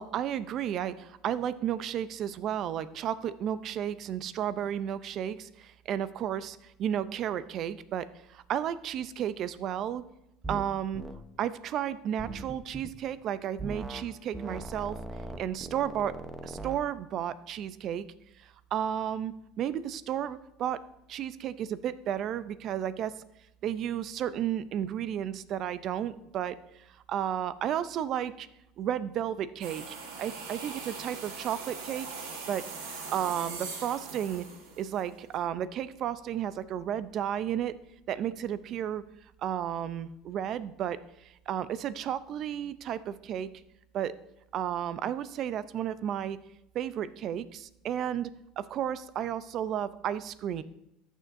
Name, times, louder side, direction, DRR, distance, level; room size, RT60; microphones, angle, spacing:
voice 1, 0.0-10.0 10.5-11.0 11.4-15.0 15.4-16.2 16.4-18.1 18.4-20.8 21.1-23.1 23.6-28.5 28.8-32.1 32.5-34.5 34.8-37.7 38.1-39.0 39.4-43.6 43.9-44.1 44.5-46.4 46.7-50.6, right 10 dB, 50° right, 15 dB, 0.5 m, -33 dB
sound 1, 10.4-10.7 10.9-11.2 12.2-12.9 13.6-14.1 14.3-16.8, right 2 dB, 15° right, 0.8 m, -39 dB
sound 2, 29.6-35.4, right 4 dB, 85° right, 1.9 m, -41 dB
14.0 x 6.3 x 2.6 m, 0.86 s
supercardioid pair, 110°, 0 cm